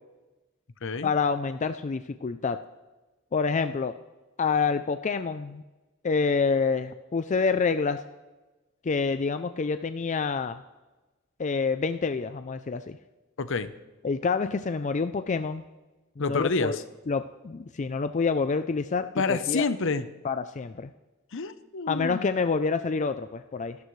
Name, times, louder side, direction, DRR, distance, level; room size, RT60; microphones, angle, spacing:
voice 1, 1.0-2.6 3.3-3.9 4.4-5.6 6.0-8.0 8.8-10.6 11.4-13.0 14.0-15.6 16.2-16.8 17.1-19.6 20.2-20.9 21.9-23.8, left 4 dB, 35° left, 10 dB, 0.4 m, -27 dB
voice 2, 13.4-13.7 16.2-16.8 19.2-20.0 21.3-22.2, left 4 dB, 65° left, 12 dB, 0.8 m, -28 dB
26.5 x 13.0 x 3.2 m, 1.1 s
head